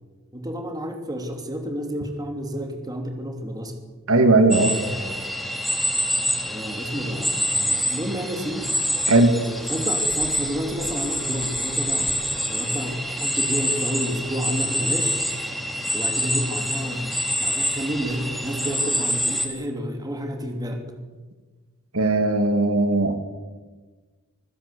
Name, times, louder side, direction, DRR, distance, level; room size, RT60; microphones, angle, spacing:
voice 1, 0.3-3.8 4.8-5.5 6.5-8.7 9.3-12.1 12.5-15.3 15.9-20.8, equal, 15° right, 4 dB, 3.0 m, -30 dB
voice 2, 4.1-4.8 9.1-9.3 21.9-23.2, right 2 dB, 70° right, 7 dB, 2.2 m, -18 dB
sound 1, 4.5-19.5, equal, ahead, 3.1 m, -26 dB
26.0 x 15.5 x 8.4 m, 1.3 s
head